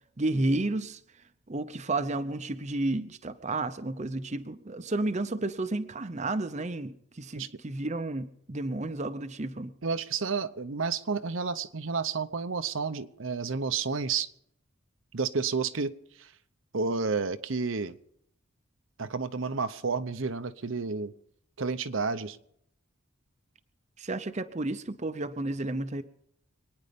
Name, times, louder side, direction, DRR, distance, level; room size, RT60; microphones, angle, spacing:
voice 1, 0.2-1.0 1.5-9.7 24.0-26.0, right 2 dB, 30° right, 9 dB, 0.7 m, -31 dB
voice 2, 9.8-14.3 15.1-15.9 16.2-16.3 16.7-18.0 19.0-21.1 21.6-22.4, right 4 dB, 65° right, 10 dB, 0.8 m, -30 dB
26.0 x 9.8 x 5.2 m, 0.69 s
head